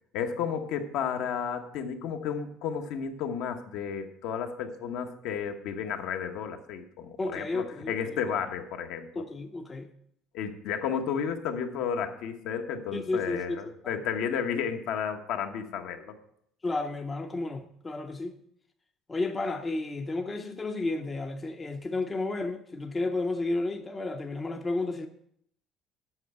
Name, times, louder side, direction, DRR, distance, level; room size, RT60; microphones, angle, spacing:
voice 1, 0.1-9.2 10.3-16.1, left 7 dB, 70° left, 1.1 m, -32 dB
voice 2, 7.2-8.0 9.2-9.9 12.9-13.6 13.8-13.9 16.6-18.4 19.1-25.1, left 2 dB, 15° left, 0.5 m, -32 dB
7.9 x 5.9 x 7.8 m
cardioid pair, 165°, 0 cm